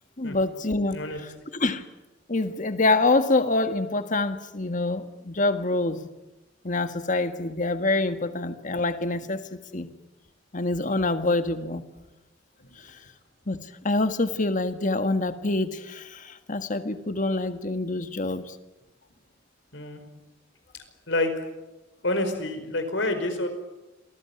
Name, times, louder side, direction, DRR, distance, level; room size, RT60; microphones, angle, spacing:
voice 1, 0.2-1.0 1.5-1.8 2.3-6.0 6.6-9.4 9.7-9.9 10.5-11.8 13.5-13.6 13.8-18.5, left 2 dB, 40° left, 10 dB, 1.7 m, -26 dB
voice 2, 22.0-23.5, left 2 dB, 70° left, 8 dB, 4.8 m, -27 dB
27.5 x 19.5 x 9.7 m, 1.0 s
head